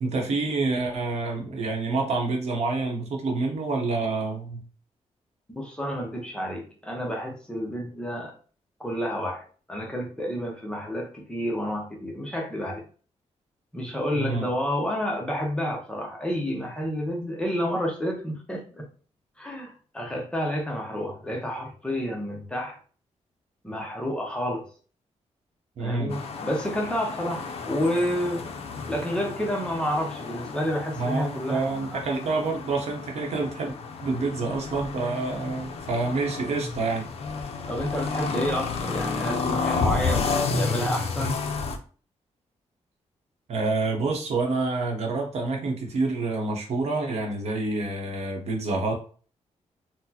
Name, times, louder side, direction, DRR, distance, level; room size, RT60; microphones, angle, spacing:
voice 1, 0.0-4.6 14.1-14.5 25.8-26.2 31.0-33.7 34.0-37.1 43.5-48.9, right 3 dB, 60° right, 1 dB, 0.8 m, -27 dB
voice 2, 5.5-8.3 8.8-12.8 13.7-18.9 19.4-22.8 23.6-24.7 25.8-28.4 28.9-32.0 37.7-41.4, equal, 10° left, 0 dB, 0.6 m, -30 dB
sound 1, 26.1-41.8, left 4 dB, 55° left, 0.4 m, -31 dB
4.0 x 2.0 x 2.8 m, 0.40 s
wide cardioid pair, 160°, 12 cm